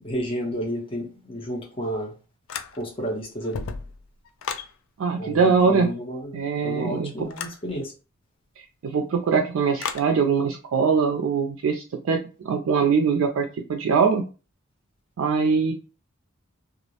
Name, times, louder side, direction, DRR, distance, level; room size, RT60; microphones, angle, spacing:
voice 1, 0.0-2.1 2.8-3.6 5.2-7.9, equal, 25° left, -2 dB, 0.7 m, -31 dB
sound 1, 2.5-3.1 3.4-4.7 7.3-7.6 9.8-10.1, left 6 dB, 80° left, 0.3 m, -33 dB
voice 2, 5.0-5.9 6.3-7.3 8.8-12.2 12.4-14.2 15.2-15.7, right 5 dB, 85° right, 3 dB, 0.4 m, -22 dB
2.4 x 2.0 x 2.7 m, 0.33 s
head